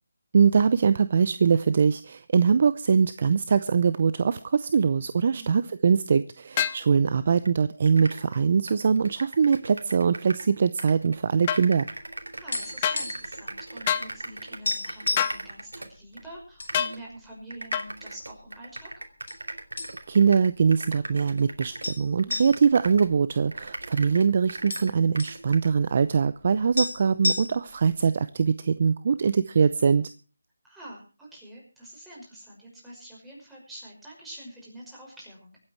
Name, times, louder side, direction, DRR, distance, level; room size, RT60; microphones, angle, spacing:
voice 1, 0.3-11.9 20.1-30.1, right 6 dB, 40° right, 13 dB, 0.7 m, -22 dB
sound 1, 6.6-6.8 11.5-11.6 12.8-13.0 13.9-14.1 15.2-15.4 16.7-17.0 17.7-17.9, left 9 dB, 25° left, 0.9 m, -26 dB
sound 2, 7.4-7.5 7.8-10.5 10.8-16.2 16.7-17.0 17.5-23.2 23.5-25.7, right 2 dB, 85° right, 2.7 m, -40 dB
sound 3, 12.1-13.4 13.7-13.8 14.2-14.3 14.6-15.4 16.1-16.7 17.1-17.3 18.0-18.6 19.3-19.4 19.8-20.3 20.6-20.7 21.8-23.9 24.2-24.3 24.5-25.4 26.4-26.5 26.8-27.8, left 3 dB, 65° left, 4.5 m, -31 dB
voice 2, 12.3-18.9 22.2-22.4 30.6-35.6, right 1 dB, 5° right, -5 dB, 5.9 m, -45 dB
24.0 x 9.0 x 4.6 m, 0.35 s
figure-of-eight pair, 160°, 0 cm